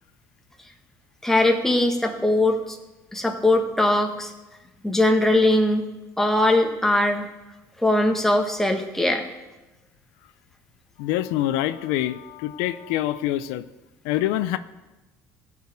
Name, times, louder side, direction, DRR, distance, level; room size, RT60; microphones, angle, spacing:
voice 1, 1.2-2.8 3.1-4.3 4.8-5.9 6.2-7.3 7.8-9.3, left 1 dB, 5° left, 3 dB, 1.6 m, -20 dB
voice 2, 11.0-13.6 14.0-14.6, left 13 dB, 90° left, 13 dB, 0.5 m, -25 dB
15.0 x 5.1 x 8.0 m, 1.1 s
supercardioid pair, 100°, 7 cm